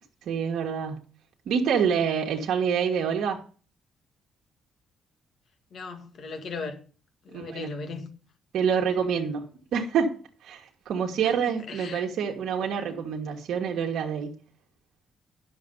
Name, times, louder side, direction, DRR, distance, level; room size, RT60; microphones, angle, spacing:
voice 1, 0.2-1.0 1.4-3.4 7.3-7.7 8.5-14.4, right 7 dB, 75° right, 1.6 m, -27 dB
voice 2, 5.7-6.8 7.3-8.1 11.2-12.1, left 4 dB, 60° left, 1.9 m, -37 dB
10.5 x 6.7 x 5.3 m
cardioid pair, 90°, 0 cm